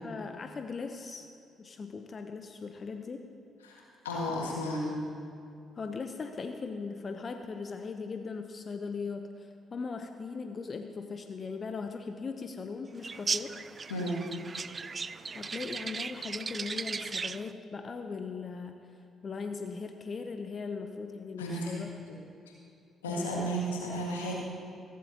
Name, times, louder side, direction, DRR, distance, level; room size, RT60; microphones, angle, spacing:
voice 1, 0.0-1.3 1.6-3.3 5.8-13.5 15.3-18.8 19.2-22.2 23.1-23.5, left 4 dB, 45° left, 6 dB, 0.7 m, -39 dB
voice 2, 3.6-5.0 13.9-14.2 21.4-21.8 22.1-22.2 23.0-24.3, equal, 90° left, -2 dB, 1.7 m, -33 dB
sound 1, 13.0-17.5, right 5 dB, 40° right, 0.3 m, -37 dB
15.0 x 15.0 x 2.8 m, 2.5 s
hypercardioid pair, 45°, 0 cm